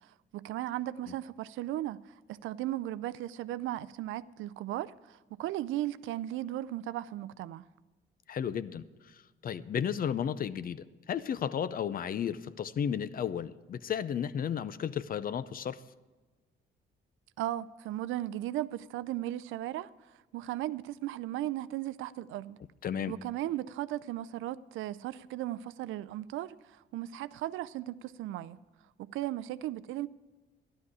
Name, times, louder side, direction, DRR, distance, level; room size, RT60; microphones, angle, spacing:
voice 1, 0.3-2.0 2.3-7.6 17.4-19.9 20.3-22.6 23.1-26.6 26.9-28.6 29.0-30.1, right 14 dB, 85° right, 0.4 m, -36 dB
voice 2, 8.3-15.8 22.8-23.1, left 8 dB, 45° left, 0.5 m, -34 dB
12.5 x 11.5 x 4.8 m
cardioid pair, 90°, 20 cm